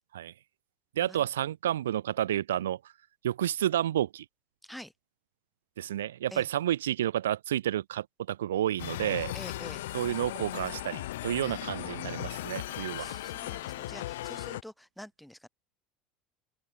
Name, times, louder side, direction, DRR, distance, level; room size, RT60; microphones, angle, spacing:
voice 1, 1.0-2.8 3.2-4.2 5.8-9.3 9.9-13.2, right 11 dB, 85° right, 0.9 m, -30 dB
voice 2, 4.6-4.9 6.3-6.5 9.3-9.9 11.5-15.5, equal, ahead, 2.3 m, -48 dB
sound 1, 8.8-14.6, left 16 dB, 80° left, 2.3 m, -37 dB
open air
hypercardioid pair, 80°, 0 cm